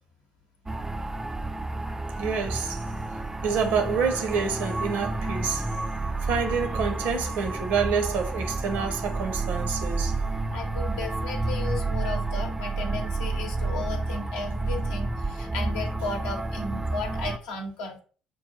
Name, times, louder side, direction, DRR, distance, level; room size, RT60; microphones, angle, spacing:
sound 1, 0.7-17.4, right 2 dB, 15° right, 0.3 m, -30 dB
voice 1, 2.2-2.8 3.4-5.6 6.2-10.1, right 6 dB, 60° right, 0.7 m, -27 dB
voice 2, 10.5-18.0, left 3 dB, 70° left, 0.7 m, -35 dB
6.2 x 2.3 x 2.7 m
figure-of-eight pair, 50°, 3 cm